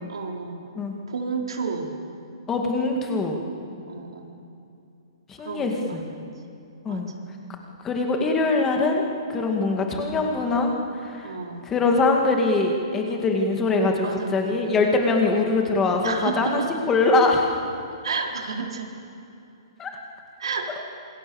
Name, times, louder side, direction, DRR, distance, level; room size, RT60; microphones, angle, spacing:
voice 1, 0.1-0.6 1.1-1.9 3.9-4.3 5.4-6.3 6.9-7.1 9.8-9.9 11.2-11.7 14.0-14.4 16.0-16.7 18.0-18.9 20.4-20.8, right 5 dB, 85° right, 1 dB, 4.4 m, -31 dB
voice 2, 2.5-3.4 5.3-5.7 6.8-7.1 7.8-9.1 9.3-11.3 11.7-14.1 14.3-16.6 16.9-17.5 19.8-19.9, left 3 dB, 10° left, 2 dB, 2.2 m, -22 dB
27.0 x 25.0 x 7.2 m, 2.6 s
hypercardioid pair, 175°, 3 cm